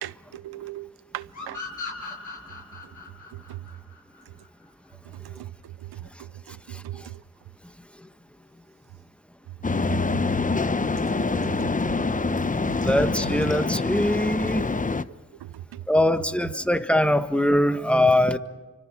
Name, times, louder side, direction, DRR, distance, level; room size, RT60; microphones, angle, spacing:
voice 1, 0.0-1.6 3.5-3.6 5.2-5.5 6.5-6.6 6.8-7.1 9.9-10.0 11.3-11.7 14.6-14.7 15.4-15.8, right 14 dB, 80° right, 0.7 m, -38 dB
sound 1, 1.3-4.7, left 4 dB, 50° left, 7.4 m, -38 dB
sound 2, 9.6-15.0, left 3 dB, 20° left, 0.8 m, -25 dB
voice 2, 12.8-14.6 15.9-18.4, left 1 dB, 5° left, 1.5 m, -22 dB
29.0 x 25.0 x 5.0 m
cardioid pair, 50°, 37 cm